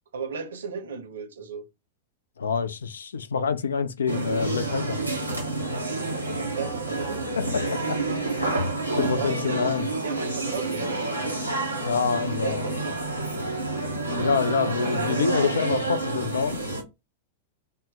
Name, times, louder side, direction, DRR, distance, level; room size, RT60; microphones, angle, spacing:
voice 1, 0.1-1.6 6.1-7.4 9.2-11.0 12.4-12.8, right 5 dB, 65° right, 0.7 m, -35 dB
voice 2, 2.4-5.0 7.4-8.0 9.0-9.9 11.8-12.7 14.2-16.6, left 5 dB, 70° left, 0.4 m, -26 dB
sound 1, 4.1-16.8, right 2 dB, 90° left, 0.8 m, -29 dB
3.6 x 2.0 x 4.0 m
figure-of-eight pair, 90°, 0 cm